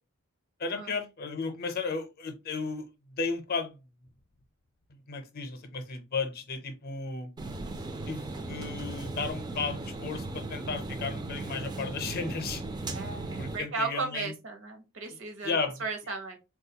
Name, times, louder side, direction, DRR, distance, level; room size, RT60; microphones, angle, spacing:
voice 1, 0.6-3.8 5.1-7.3 8.1-12.6 13.4-14.3 15.4-15.8, left 4 dB, 45° left, 0.6 m, -34 dB
sound 1, 7.4-13.6, right 2 dB, 20° right, 0.4 m, -37 dB
voice 2, 12.9-16.4, right 4 dB, 65° right, 0.8 m, -35 dB
3.6 x 2.3 x 2.7 m
head